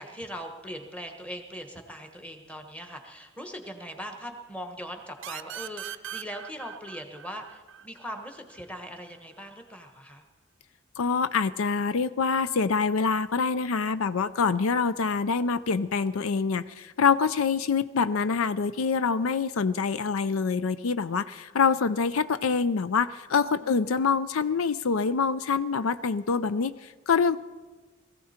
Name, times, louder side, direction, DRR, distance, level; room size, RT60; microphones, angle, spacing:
voice 1, 0.0-10.2 23.6-24.2, equal, 5° left, 5 dB, 1.3 m, -40 dB
sound 1, 5.2-8.6, right 10 dB, 60° right, 0.5 m, -40 dB
voice 2, 11.0-27.4, left 5 dB, 75° left, 14 dB, 0.5 m, -25 dB
21.0 x 15.0 x 4.4 m, 1.3 s
head